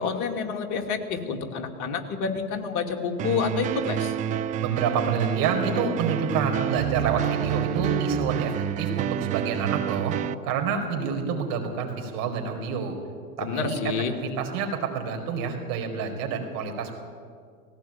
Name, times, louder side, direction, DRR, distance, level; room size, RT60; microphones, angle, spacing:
voice 1, 0.0-4.1 13.4-14.1, left 6 dB, 40° left, 4 dB, 2.7 m, -28 dB
sound 1, 3.2-10.3, right 11 dB, 15° right, 0.4 m, -28 dB
voice 2, 4.6-10.2 10.4-13.0 13.4-16.9, right 5 dB, 45° right, 4 dB, 4.8 m, -28 dB
18.5 x 17.0 x 9.0 m, 2.1 s
hypercardioid pair, 115°, 46 cm